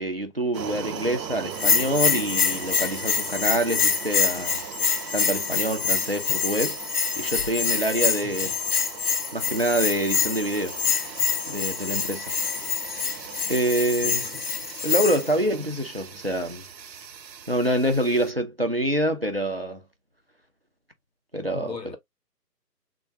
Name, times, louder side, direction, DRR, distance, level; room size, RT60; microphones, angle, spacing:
voice 1, 0.0-4.6 5.1-6.8 7.2-8.5 9.3-10.8 11.5-12.3 13.5-14.3 14.8-16.6 17.5-19.8 21.3-21.7, right 1 dB, 40° right, 0.5 m, -26 dB
Air compressor - On run off, 0.5-18.3, right 8 dB, 85° right, 0.6 m, -39 dB
Bell, 1.5-15.3, left 6 dB, 60° left, 0.7 m, -26 dB
voice 2, 8.2-8.6 14.0-14.4 21.5-22.0, left 5 dB, 80° left, 1.0 m, -40 dB
3.5 x 2.2 x 2.7 m
figure-of-eight pair, 155°, 50 cm